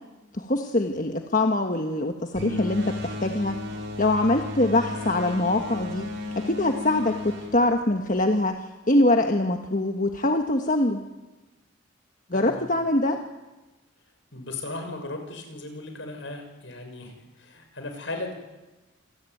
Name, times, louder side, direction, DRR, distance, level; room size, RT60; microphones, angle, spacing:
voice 1, 0.3-3.6 4.0-6.1 6.3-11.0 12.3-13.2, left 1 dB, 40° left, 4 dB, 1.4 m, -23 dB
sound 1, 2.3-8.4, left 2 dB, 65° right, 6.0 m, -34 dB
voice 2, 12.3-12.8 14.3-18.3, left 2 dB, 70° left, 5 dB, 6.4 m, -37 dB
27.5 x 18.5 x 9.3 m, 1.1 s
head